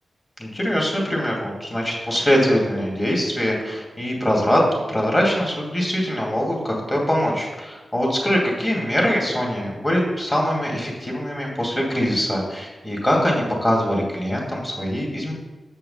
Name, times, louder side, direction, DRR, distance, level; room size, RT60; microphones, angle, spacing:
voice 1, 0.4-4.6 4.9-15.3, equal, 25° left, -2 dB, 2.7 m, -22 dB
7.8 x 5.6 x 5.8 m, 1.2 s
wide cardioid pair, 95°, 0 cm